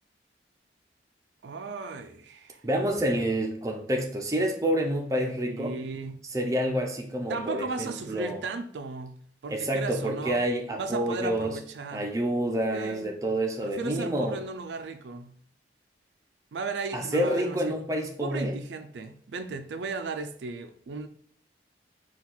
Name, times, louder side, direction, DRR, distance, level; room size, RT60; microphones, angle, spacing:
voice 1, 1.4-2.6 5.5-6.2 7.3-10.4 10.8-12.1 12.7-13.1 13.6-15.3 16.5-17.8 18.2-21.1, right 4 dB, 75° right, 0.4 m, -36 dB
voice 2, 2.6-5.8 6.3-8.4 9.5-11.6 11.9-14.4 16.9-18.6, right 1 dB, 20° right, 0.5 m, -28 dB
4.4 x 2.4 x 3.7 m
head